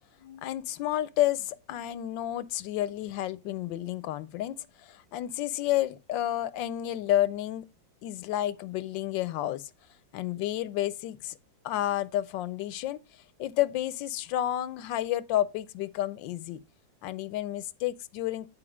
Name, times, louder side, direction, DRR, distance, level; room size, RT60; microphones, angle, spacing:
voice 1, 0.2-7.7 8.0-9.6 10.1-11.4 11.6-13.0 13.4-16.6 17.0-18.5, left 13 dB, 75° left, 1.2 m, -30 dB
10.0 x 4.5 x 4.8 m
omnidirectional pair, 2.1 m